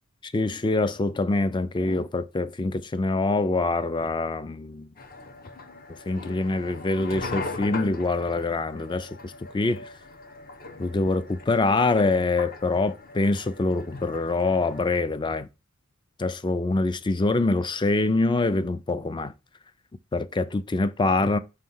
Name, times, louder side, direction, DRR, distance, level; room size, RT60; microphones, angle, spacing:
voice 1, 0.2-4.9 6.1-9.8 10.8-15.5 16.2-19.3 20.1-21.4, left 2 dB, 20° left, 0.4 m, -25 dB
sound 1, 5.0-15.0, left 3 dB, 45° left, 0.9 m, -40 dB
5.5 x 3.3 x 5.4 m
head